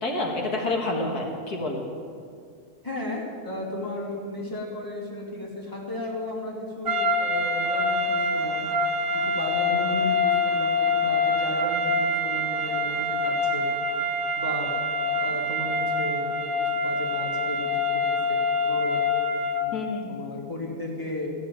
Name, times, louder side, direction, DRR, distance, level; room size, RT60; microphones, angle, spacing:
voice 1, 0.0-1.8 19.7-20.3, left 2 dB, 75° left, 0 dB, 2.0 m, -28 dB
voice 2, 2.8-8.7 9.1-13.6 14.4-14.7 15.2-17.8 18.1-19.0 19.6-21.3, left 2 dB, 15° left, -3 dB, 2.4 m, -34 dB
sound 1, 6.8-19.7, left 2 dB, 35° right, 1.3 m, -25 dB
14.5 x 6.2 x 9.3 m, 2.2 s
omnidirectional pair, 1.7 m